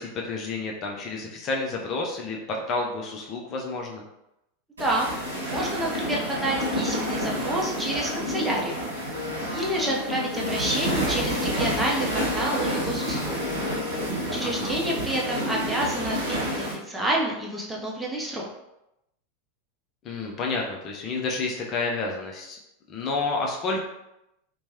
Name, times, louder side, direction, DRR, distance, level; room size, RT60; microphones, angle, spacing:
voice 1, 0.0-4.0 14.3-14.7 20.0-22.6 22.9-23.8, left 3 dB, 40° left, 0 dB, 0.5 m, -30 dB
voice 2, 4.8-8.8 9.5-13.6 14.3-18.4, right 1 dB, 10° right, -3 dB, 0.7 m, -29 dB
sound 1, 4.8-16.7, equal, 85° right, 1.0 m, -29 dB
Wind instrument woodwind instrument, 9.1-14.3, left 4 dB, 90° left, 0.4 m, -37 dB
3.0 x 2.2 x 2.8 m, 0.86 s
figure-of-eight pair, 90°, 0 cm